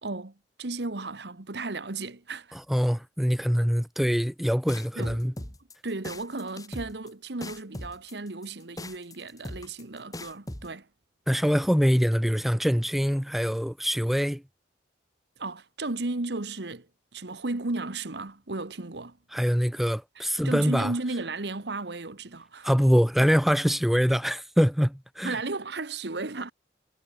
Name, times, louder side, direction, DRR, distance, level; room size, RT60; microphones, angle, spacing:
voice 1, 0.0-2.6 5.0-5.5 5.8-10.9 15.4-16.9 17.1-19.2 20.2-22.7 25.2-26.5, right 2 dB, 65° right, 1.3 m, -34 dB
voice 2, 2.7-5.3 11.3-14.4 19.3-20.9 22.6-25.4, equal, ahead, 0.7 m, -24 dB
sound 1, 4.7-10.7, left 1 dB, 20° left, 2.6 m, -39 dB
head